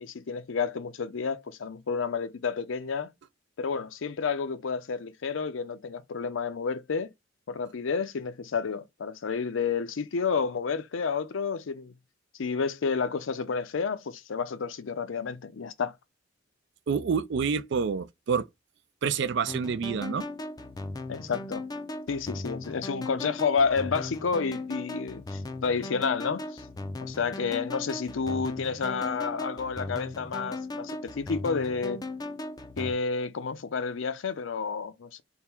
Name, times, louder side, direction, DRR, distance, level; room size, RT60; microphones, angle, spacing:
voice 1, 0.0-3.1 3.6-7.1 7.5-11.9 12.4-15.9 21.1-21.7 22.1-26.6 27.0-32.0 32.8-35.2, left 5 dB, 75° left, 0.5 m, -30 dB
voice 2, 16.9-18.5 19.0-20.3, right 6 dB, 65° right, 0.4 m, -28 dB
sound 1, 19.5-32.9, left 2 dB, 20° left, 0.4 m, -38 dB
3.6 x 2.1 x 4.4 m
head